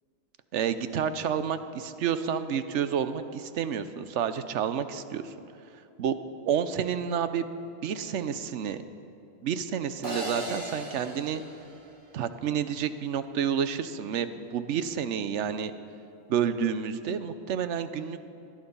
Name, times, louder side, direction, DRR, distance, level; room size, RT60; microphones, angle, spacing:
voice 1, 0.5-5.3 6.0-6.2 6.4-7.4 7.8-8.8 9.4-11.4 12.1-15.7 16.3-18.2, right 8 dB, 85° right, 11 dB, 1.0 m, -29 dB
sound 1, 10.0-12.4, right 1 dB, 45° right, 2.4 m, -37 dB
18.0 x 11.5 x 5.4 m, 2.7 s
omnidirectional pair, 1.2 m